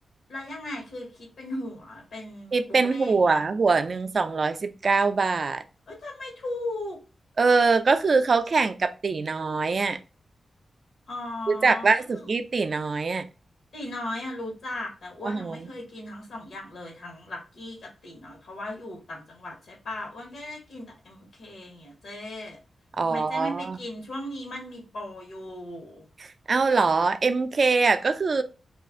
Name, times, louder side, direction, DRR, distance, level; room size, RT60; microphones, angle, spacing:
voice 1, 0.3-3.4 5.9-7.0 11.1-12.3 13.7-22.6 23.1-26.0, left 1 dB, 85° left, 1.1 m, -37 dB
voice 2, 2.5-5.6 7.4-10.0 11.5-13.3 15.2-15.7 23.0-23.8 26.5-28.4, right 4 dB, 45° right, 0.3 m, -23 dB
2.5 x 2.4 x 3.5 m
wide cardioid pair, 125°, 0 cm